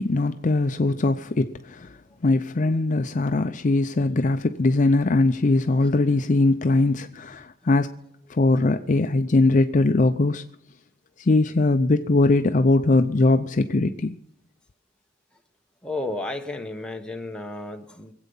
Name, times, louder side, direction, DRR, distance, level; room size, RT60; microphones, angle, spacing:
voice 1, 0.0-1.9 2.2-7.9 8.3-10.4 11.2-14.2, left 2 dB, 35° left, 0.5 m, -21 dB
voice 2, 15.8-18.1, left 2 dB, 5° left, 1.0 m, -32 dB
23.0 x 8.2 x 5.5 m
head